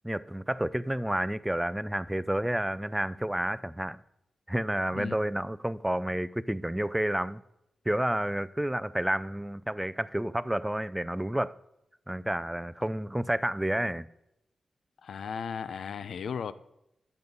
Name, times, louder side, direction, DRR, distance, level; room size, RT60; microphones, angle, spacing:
voice 1, 0.0-4.0 4.5-7.4 7.9-11.5 12.1-14.1, right 1 dB, 5° right, 0.4 m, -30 dB
voice 2, 4.9-5.2 15.0-16.5, left 6 dB, 90° left, 0.6 m, -36 dB
10.5 x 8.1 x 5.4 m
wide cardioid pair, 115°, 0 cm